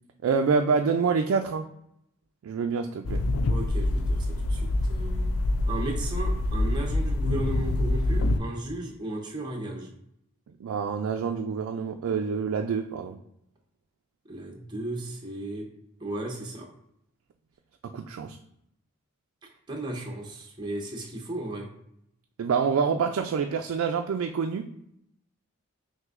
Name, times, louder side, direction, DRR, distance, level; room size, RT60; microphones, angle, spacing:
voice 1, 0.2-1.6 2.4-3.2 10.6-13.2 17.9-18.4 22.4-24.7, right 5 dB, 75° right, 5 dB, 0.3 m, -26 dB
sound 1, 3.1-8.4, left 1 dB, 80° left, 0.4 m, -26 dB
voice 2, 3.5-5.3 5.7-9.9 14.3-15.7 16.0-16.7 19.7-21.7, right 1 dB, 20° right, 0 dB, 0.7 m, -35 dB
6.0 x 2.7 x 2.5 m, 0.76 s
head